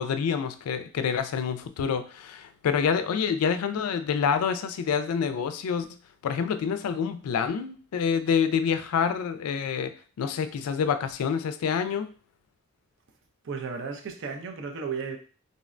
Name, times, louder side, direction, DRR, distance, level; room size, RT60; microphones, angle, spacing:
voice 1, 0.0-5.9 6.2-12.1, left 6 dB, 90° left, 0.3 m, -27 dB
voice 2, 13.4-15.2, right 5 dB, 60° right, 0.5 m, -34 dB
3.7 x 2.1 x 2.4 m
head